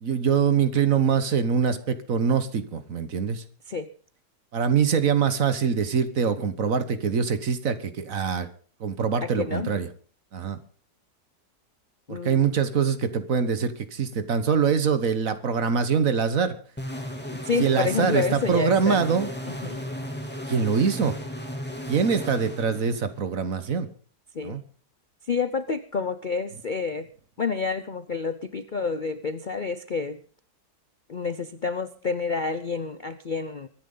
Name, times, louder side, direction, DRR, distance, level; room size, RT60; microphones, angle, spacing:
voice 1, 0.0-3.4 4.5-8.5 8.8-9.9 10.3-10.6 12.1-16.5 17.6-19.3 20.5-21.1 21.9-23.9 24.4-24.6, right 6 dB, 55° right, 11 dB, 1.6 m, -24 dB
voice 2, 9.2-9.7 12.1-12.5 17.4-19.1 19.6-19.8 24.3-24.6 25.3-27.1 27.4-30.2 31.1-33.7, left 4 dB, 45° left, 12 dB, 0.6 m, -29 dB
sound 1, 16.8-23.3, equal, 5° left, 2.6 m, -35 dB
24.0 x 10.5 x 3.9 m, 0.43 s
omnidirectional pair, 1.8 m